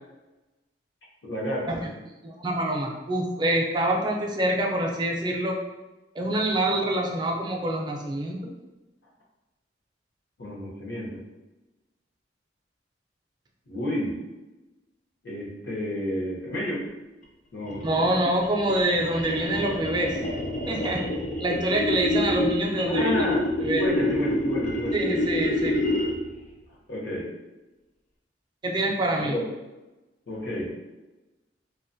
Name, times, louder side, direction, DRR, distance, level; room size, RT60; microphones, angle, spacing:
voice 1, 1.2-1.8 10.4-11.2 13.7-14.2 15.2-16.9 17.5-17.8 22.9-25.0 26.9-27.3 29.2-29.4 30.3-30.7, equal, 75° left, -4 dB, 0.8 m, -30 dB
voice 2, 2.2-5.6 6.2-8.5 17.8-20.2 20.7-21.0 21.4-23.1 23.6-23.8 24.9-25.9 28.6-29.4, right 1 dB, 25° right, 0 dB, 0.4 m, -26 dB
sound 1, 17.6-26.3, left 1 dB, 40° left, 0.4 m, -28 dB
2.5 x 2.2 x 2.5 m, 1.1 s
head